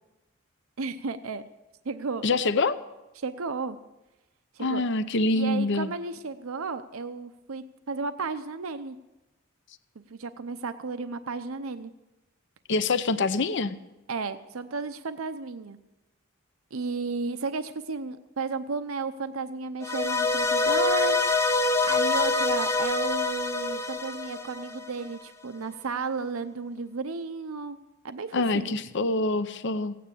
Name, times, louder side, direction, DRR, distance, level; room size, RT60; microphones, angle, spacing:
voice 1, 0.8-1.4 1.8-2.3 3.2-3.8 4.5-4.8 5.3-9.0 10.1-11.9 14.1-15.8 16.7-21.2 21.8-27.8 28.0-28.8, right 4 dB, 85° right, 10 dB, 0.7 m, -33 dB
voice 2, 2.2-2.8 4.6-5.9 12.7-13.8 28.3-30.0, left 3 dB, 60° left, 12 dB, 0.7 m, -25 dB
sound 1, 19.8-25.1, left 3 dB, 15° left, 0.9 m, -25 dB
16.5 x 9.3 x 8.5 m, 1.0 s
head